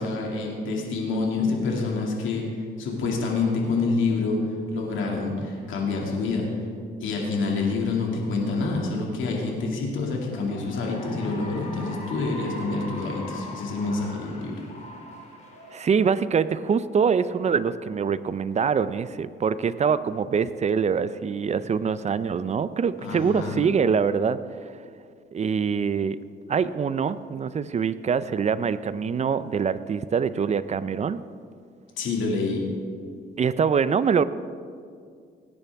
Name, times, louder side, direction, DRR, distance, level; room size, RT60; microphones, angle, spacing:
voice 1, 0.0-6.5 7.0-14.6 23.0-23.6 32.0-32.6, left 3 dB, 80° left, -1 dB, 2.3 m, -27 dB
Cheering / Applause, 10.2-16.8, left 1 dB, 35° left, 2.9 m, -42 dB
voice 2, 15.7-24.8 25.3-26.2 26.5-31.3 33.4-34.2, right 6 dB, 35° right, 15 dB, 0.5 m, -24 dB
18.0 x 9.8 x 3.5 m, 2.1 s
cardioid pair, 90°, 20 cm